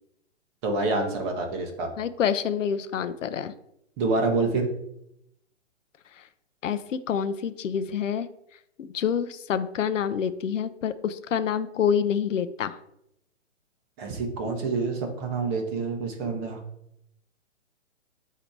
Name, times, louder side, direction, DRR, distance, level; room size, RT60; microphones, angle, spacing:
voice 1, 0.6-1.9 4.0-4.7 14.0-16.6, right 3 dB, 20° right, 3 dB, 0.9 m, -27 dB
voice 2, 2.0-3.5 6.2-6.3 6.6-8.3 8.8-12.8, left 8 dB, 80° left, 12 dB, 0.6 m, -27 dB
8.2 x 2.9 x 4.6 m, 0.79 s
hypercardioid pair, 150°, 37 cm